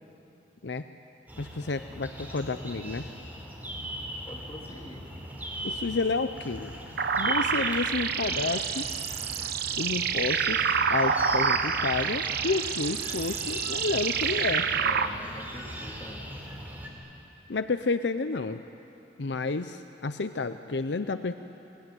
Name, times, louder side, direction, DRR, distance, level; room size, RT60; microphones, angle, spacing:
sound 1, 1.3-16.9, equal, 10° right, 4.2 m, -39 dB
voice 1, 1.4-3.1 5.6-6.8 7.2-8.9 9.8-10.6 10.9-14.7 17.5-18.6 19.2-21.3, left 3 dB, 70° left, 10 dB, 0.7 m, -30 dB
voice 2, 4.2-5.1 14.7-16.5, left 1 dB, 25° left, -1 dB, 3.5 m, -45 dB
sound 2, 7.0-15.1, right 7 dB, 60° right, 1.0 m, -28 dB
28.5 x 21.0 x 9.2 m, 3.0 s
head